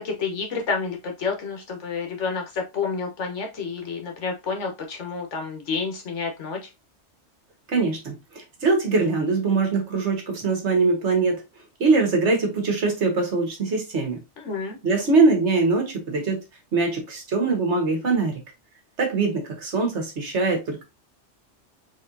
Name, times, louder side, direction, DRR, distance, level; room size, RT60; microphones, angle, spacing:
voice 1, 0.0-6.6 14.4-14.8, left 5 dB, 90° left, 1.4 m, -29 dB
voice 2, 7.7-11.4 11.8-14.2 14.8-16.4 16.7-18.4 19.0-20.8, right 3 dB, 75° right, 1.6 m, -22 dB
4.2 x 3.6 x 2.6 m
omnidirectional pair, 1.2 m